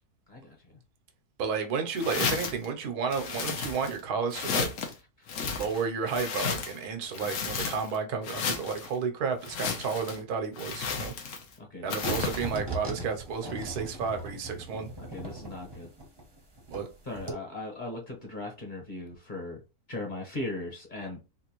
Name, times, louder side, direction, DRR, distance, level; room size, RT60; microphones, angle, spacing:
voice 1, 0.3-0.8 5.2-5.5 11.6-12.0 15.1-15.9 17.0-19.6 19.9-21.2, left 2 dB, 35° left, 1.1 m, -38 dB
voice 2, 1.4-4.7 5.4-11.1 11.8-14.9 16.7-16.9, right 5 dB, 85° right, 1.3 m, -32 dB
sound 1, 2.0-2.6 3.1-4.0 4.3-4.9 5.3-6.8 7.1-8.0 8.2-8.9 9.4-10.2 10.6-11.5 11.9-12.5, left 6 dB, 65° left, 1.0 m, -33 dB
sound 2, 12.0-16.9 17.2-17.3, right 1 dB, 25° right, 0.6 m, -38 dB
3.7 x 2.5 x 2.9 m
omnidirectional pair, 1.6 m